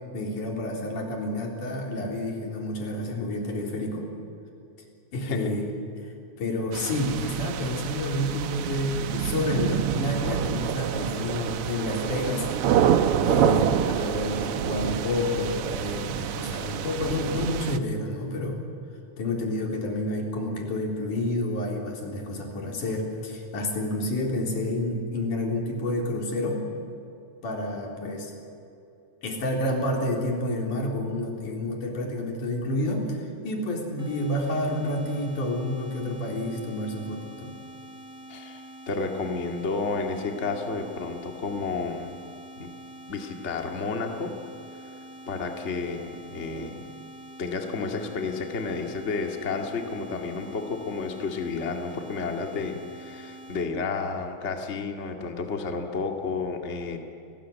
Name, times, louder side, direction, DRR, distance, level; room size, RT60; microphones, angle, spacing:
voice 1, 0.1-4.1 5.1-5.7 6.4-12.5 13.3-18.7 19.2-26.7 27.4-28.3 29.2-33.2 33.4-37.5, left 1 dB, 80° left, 0 dB, 5.3 m, -29 dB
voice 2, 5.2-5.5 38.3-42.2 42.6-42.7 43.1-44.3 45.3-46.9 47.4-57.0, left 4 dB, 25° left, 3 dB, 1.9 m, -31 dB
sound 1, 6.7-17.8, right 8 dB, 65° right, 1.5 m, -27 dB
sound 2, 34.0-53.7, right 1 dB, ahead, 4.7 m, -45 dB
29.0 x 20.0 x 9.2 m, 2.8 s
omnidirectional pair, 3.5 m